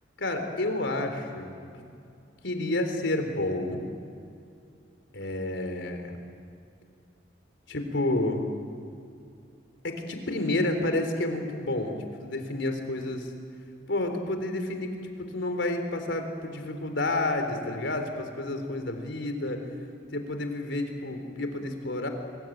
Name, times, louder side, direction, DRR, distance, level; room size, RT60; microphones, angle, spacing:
voice 1, 0.2-1.8 2.4-3.8 5.1-6.2 7.7-8.5 9.8-13.3 13.9-19.6 20.1-22.1, left 2 dB, 75° left, 6 dB, 3.7 m, -30 dB
24.5 x 23.5 x 9.2 m, 2.4 s
head